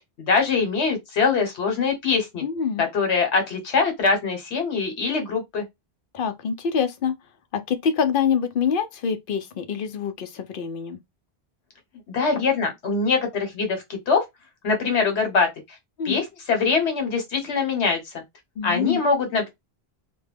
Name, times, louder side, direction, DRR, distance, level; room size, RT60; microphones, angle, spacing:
voice 1, 0.3-2.4 2.8-5.6 12.1-14.2 14.6-15.5 16.0-18.2 18.6-19.5, left 4 dB, 80° left, 1.1 m, -23 dB
voice 2, 2.4-2.8 6.1-7.1 7.5-11.0 16.0-16.2 18.6-19.0, left 7 dB, 60° left, 0.6 m, -25 dB
2.2 x 2.2 x 3.2 m
omnidirectional pair, 1.1 m